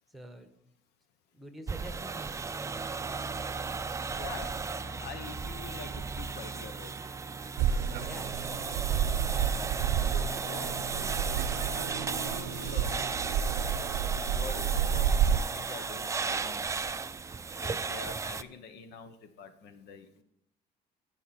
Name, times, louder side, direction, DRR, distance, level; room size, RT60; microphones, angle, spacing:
voice 1, 0.1-0.5 1.3-2.9 7.8-8.7, right 1 dB, ahead, 6 dB, 1.4 m, -47 dB
sound 1, 1.7-18.4, right 4 dB, 20° right, 0.4 m, -35 dB
voice 2, 4.1-4.5 4.8-6.9 7.7-8.2 10.1-11.4 12.1-13.0 14.3-16.6 17.6-20.2, left 6 dB, 80° left, 10 dB, 1.0 m, -46 dB
sound 2, 7.6-15.4, right 8 dB, 85° right, 0.6 m, -30 dB
15.0 x 5.6 x 4.4 m, 0.73 s
cardioid pair, 110°, 17 cm